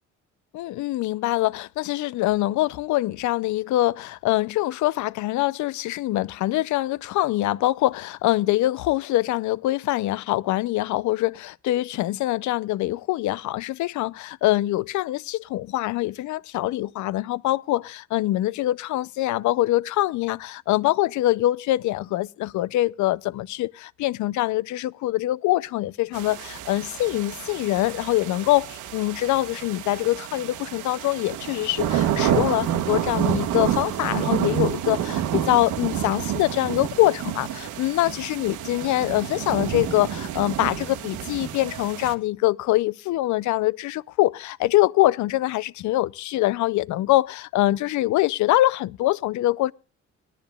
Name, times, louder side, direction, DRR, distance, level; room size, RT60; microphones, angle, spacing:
voice 1, 0.5-49.7, left 16 dB, 75° left, 0.5 m, -24 dB
sound 1, 26.1-42.1, right 10 dB, 80° right, 1.3 m, -29 dB
18.5 x 12.5 x 2.3 m
cardioid pair, 120°, 29 cm